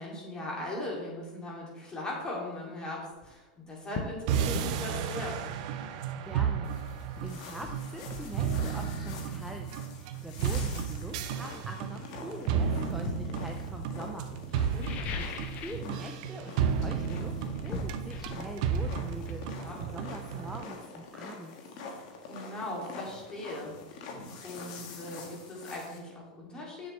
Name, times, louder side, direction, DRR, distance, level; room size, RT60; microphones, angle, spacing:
voice 1, 0.0-5.4 14.7-15.1 19.4-19.8 22.3-23.7 24.4-26.9, left 1 dB, 20° left, -2 dB, 2.6 m, -39 dB
sound 1, 3.1-3.3 3.9-4.2 4.5-4.7 6.6-6.7 7.2-8.8 9.9-10.0 10.5-11.9 12.5-13.3 14.6-15.9 16.2-16.5 16.8-20.4 20.7-20.8, left 4 dB, 40° left, 0.9 m, -41 dB
sound 2, 4.3-20.6, right 7 dB, 60° right, 0.6 m, -33 dB
voice 2, 6.2-14.3 15.1-21.6, right 1 dB, 5° right, 2 dB, 0.5 m, -44 dB
sound 3, 6.6-26.0, left 4 dB, 60° left, 1.5 m, -46 dB
7.6 x 7.0 x 3.3 m, 1.1 s
supercardioid pair, 130°, 4 cm